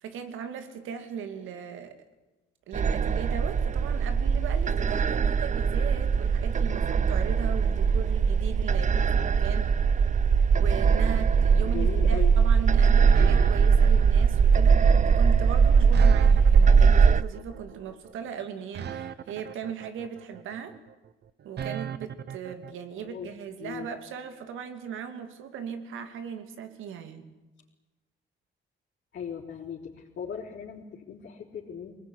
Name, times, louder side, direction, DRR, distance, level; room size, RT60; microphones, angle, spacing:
voice 1, 0.0-2.0 2.7-9.7 10.5-20.8 21.4-27.3, right 7 dB, 85° right, 9 dB, 2.7 m, -38 dB
sound 1, 2.7-17.2, right 6 dB, 40° right, 0.8 m, -21 dB
voice 2, 11.6-12.3 13.2-13.6 23.0-23.3 23.6-23.9 29.1-31.9, left 7 dB, 60° left, -5 dB, 4.5 m, -38 dB
sound 2, 13.1-22.7, right 8 dB, 60° right, 1.2 m, -38 dB
23.0 x 20.0 x 10.0 m, 1.1 s
cardioid pair, 90°, 20 cm